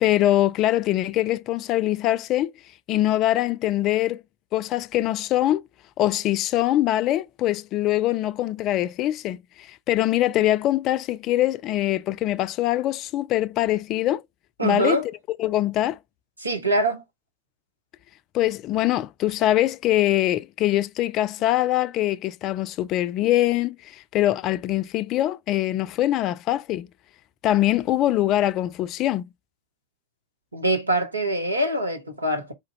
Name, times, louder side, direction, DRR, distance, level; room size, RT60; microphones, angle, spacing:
voice 1, 0.0-2.5 2.9-4.2 4.5-5.6 6.0-14.2 14.6-15.0 15.4-16.0 18.3-26.9 27.4-29.3, left 14 dB, 35° left, 0.4 m, -23 dB
voice 2, 14.6-15.0 16.4-17.0 30.5-32.5, right 1 dB, 80° right, 1.1 m, -24 dB
4.5 x 3.8 x 3.0 m
figure-of-eight pair, 90°, 0 cm